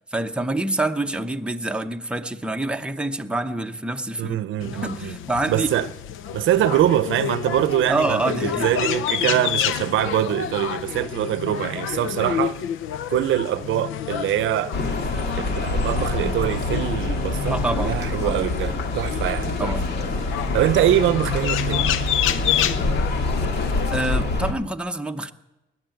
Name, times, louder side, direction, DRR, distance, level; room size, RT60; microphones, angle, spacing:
voice 1, 0.1-4.4 4.6-5.7 7.9-8.7 17.5-18.4 19.6-19.8 23.9-25.3, right 2 dB, 5° right, 0.9 m, -26 dB
voice 2, 4.2-5.2 5.5-5.9 6.3-12.6 13.1-14.7 15.4-19.8 20.5-21.8, right 12 dB, 75° right, 0.7 m, -23 dB
sound 1, 4.6-24.0, left 10 dB, 85° left, 0.7 m, -29 dB
sound 2, 14.7-24.5, left 2 dB, 60° left, 2.0 m, -25 dB
20.0 x 7.4 x 9.1 m
cardioid pair, 90°, 20 cm